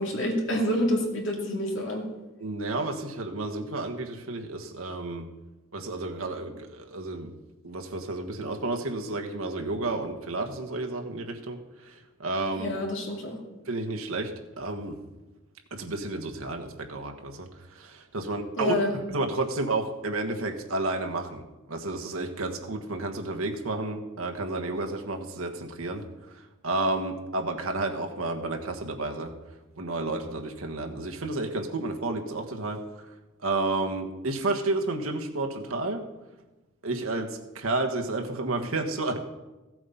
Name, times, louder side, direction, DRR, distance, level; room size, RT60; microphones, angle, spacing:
voice 1, 0.0-2.1 12.5-13.4 18.6-19.0, left 1 dB, 65° left, 1 dB, 2.4 m, -28 dB
voice 2, 2.4-5.3 5.7-7.3 7.6-12.7 13.7-14.3 14.6-15.0 15.7-18.7 19.1-26.0 26.6-29.3 29.8-32.8 33.4-36.0 36.8-39.2, right 2 dB, 85° right, 4 dB, 1.4 m, -31 dB
15.5 x 7.8 x 5.5 m, 1.1 s
head